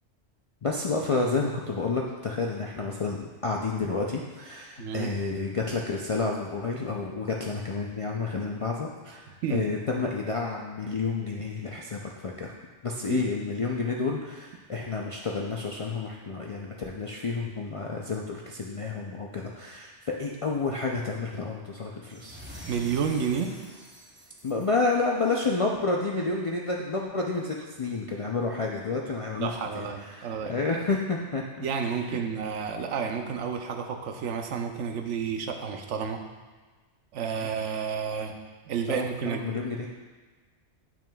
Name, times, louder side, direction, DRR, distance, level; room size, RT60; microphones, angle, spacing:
voice 1, 0.6-12.5 12.8-22.4 24.4-31.6 32.1-32.2 37.3-37.5 38.9-39.9, left 3 dB, 55° left, -1 dB, 0.3 m, -30 dB
voice 2, 4.8-5.1 9.4-9.7 13.1-13.2 22.7-23.5 29.4-30.5 31.6-36.2 37.1-38.3 38.7-39.5, right 6 dB, 90° right, 4 dB, 1.0 m, -30 dB
sound 1, 22.1-25.4, equal, 10° right, 0.7 m, -46 dB
8.7 x 5.9 x 2.3 m, 1.4 s
omnidirectional pair, 1.2 m